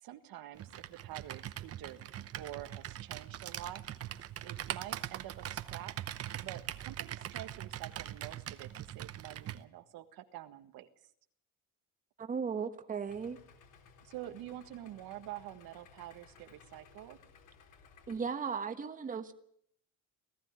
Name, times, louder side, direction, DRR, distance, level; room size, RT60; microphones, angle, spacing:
voice 1, 0.0-3.9 4.4-5.9 6.4-10.9 14.0-17.2, right 13 dB, 90° right, 8 dB, 1.7 m, -47 dB
Computer keyboard, 0.6-9.6, right 11 dB, 45° right, 0.8 m, -42 dB
voice 2, 12.2-13.4 18.1-19.3, right 6 dB, 25° right, 8 dB, 1.2 m, -36 dB
Idling, 13.1-18.2, left 5 dB, 60° left, 3.3 m, -60 dB
18.5 x 15.0 x 9.7 m, 0.69 s
cardioid pair, 170°, 35 cm